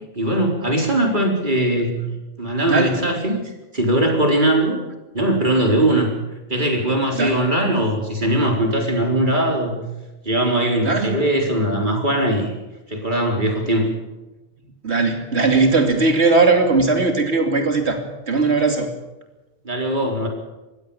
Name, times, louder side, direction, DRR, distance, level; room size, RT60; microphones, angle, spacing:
voice 1, 0.1-2.0 2.4-4.8 5.1-6.1 6.5-9.8 10.2-12.5 12.9-13.9 19.6-20.3, right 1 dB, 35° right, 2 dB, 4.4 m, -20 dB
voice 2, 2.7-3.0 7.1-7.4 10.8-11.3 14.8-18.0 18.3-18.9, right 3 dB, 50° right, 5 dB, 3.1 m, -18 dB
23.5 x 16.5 x 7.2 m, 1.1 s
omnidirectional pair, 1.4 m